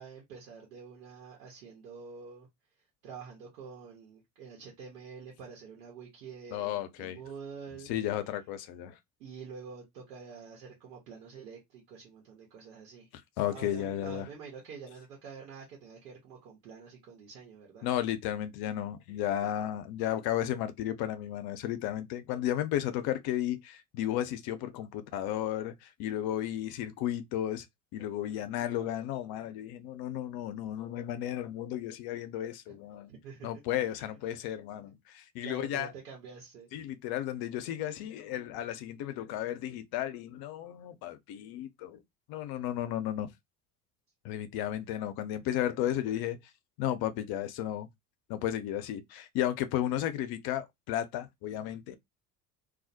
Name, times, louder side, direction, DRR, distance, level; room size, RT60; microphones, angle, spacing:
voice 1, 0.0-2.5 3.0-7.9 9.2-13.1 13.5-17.9 33.1-33.6 35.4-36.7, right 5 dB, 75° right, 1.1 m, -47 dB
voice 2, 6.5-7.2 7.8-9.0 13.4-14.3 17.8-27.7 27.9-33.1 33.4-35.9 36.7-42.0 42.3-43.3 44.2-46.4 46.8-47.9 48.3-52.0, left 12 dB, 50° left, 0.6 m, -33 dB
2.3 x 2.0 x 2.7 m
figure-of-eight pair, 60°, 47 cm